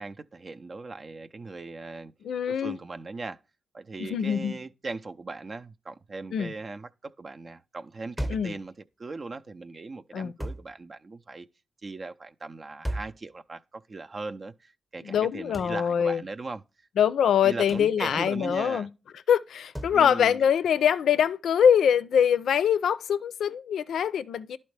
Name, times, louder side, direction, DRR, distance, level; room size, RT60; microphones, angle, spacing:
voice 1, 0.0-2.1 2.5-3.4 3.7-8.7 9.0-11.5 11.8-16.6 17.4-18.9 19.9-20.5, right 3 dB, 45° right, 0.5 m, -39 dB
voice 2, 2.2-2.8 4.0-4.5 6.3-6.5 8.3-8.5 10.1-10.3 15.0-16.2 17.0-18.9 19.3-24.6, left 8 dB, 80° left, 0.4 m, -23 dB
sound 1, 8.2-8.6 10.4-10.7 12.8-13.2 15.5-15.8 17.7-17.9 19.7-20.0, equal, 5° right, 0.8 m, -34 dB
11.5 x 4.2 x 3.2 m
cardioid pair, 70°, 0 cm